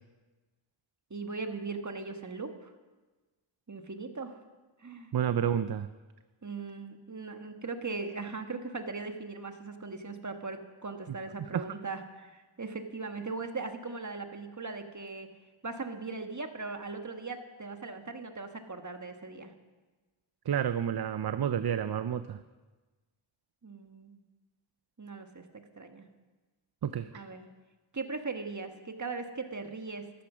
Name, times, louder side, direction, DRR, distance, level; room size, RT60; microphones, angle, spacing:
voice 1, 1.1-2.7 3.7-4.4 4.8-5.1 6.4-15.3 15.6-19.5 23.6-24.2 25.0-25.4 25.8-26.1 27.1-27.5 27.9-30.0, right 4 dB, 35° right, 6 dB, 1.5 m, -39 dB
voice 2, 5.1-5.9 11.5-11.6 20.5-22.4 26.8-27.3, right 9 dB, 50° right, 12 dB, 0.6 m, -30 dB
14.0 x 12.0 x 6.2 m, 1.3 s
wide cardioid pair, 50°, 49 cm